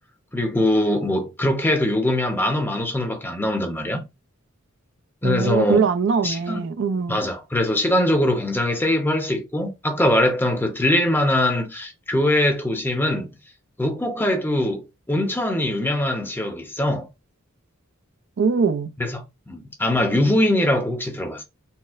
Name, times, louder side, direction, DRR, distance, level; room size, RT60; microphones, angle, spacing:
voice 1, 0.3-4.0 5.2-5.8 6.2-6.6 7.1-13.3 13.8-17.1 19.0-21.4, left 1 dB, 10° left, 0.6 m, -22 dB
voice 2, 5.2-7.2 18.4-18.9, right 5 dB, 60° right, 0.4 m, -22 dB
4.2 x 2.0 x 2.4 m
head